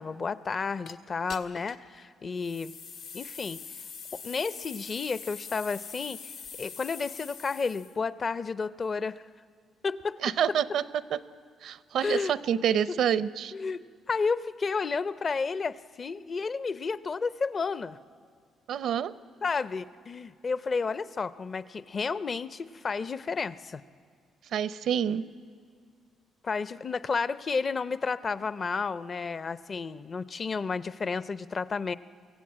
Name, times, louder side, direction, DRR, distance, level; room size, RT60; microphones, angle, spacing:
voice 1, 0.0-2.7 3.1-3.6 4.2-6.3 6.6-9.2 9.8-10.2 12.0-12.3 13.5-18.0 19.4-23.8 26.4-31.9, left 4 dB, 40° left, 15 dB, 0.6 m, -31 dB
sound 1, 0.9-1.0 1.3-1.9 2.4-8.0, left 6 dB, 80° left, 1.4 m, -43 dB
voice 2, 10.2-11.2 11.6-13.5 18.7-19.1 24.5-25.2, right 9 dB, 70° right, 16 dB, 0.6 m, -27 dB
24.0 x 16.0 x 8.8 m, 2.1 s
cardioid pair, 90°, 0 cm